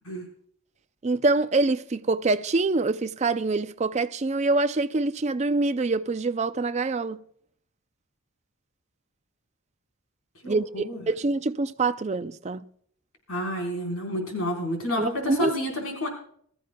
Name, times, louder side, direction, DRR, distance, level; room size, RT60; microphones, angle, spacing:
voice 1, 1.0-7.2 10.5-12.7 15.0-15.6, right 3 dB, 30° right, 0.4 m, -25 dB
voice 2, 10.4-11.0 13.3-16.1, left 1 dB, 80° left, 4.3 m, -29 dB
23.5 x 13.5 x 2.3 m
head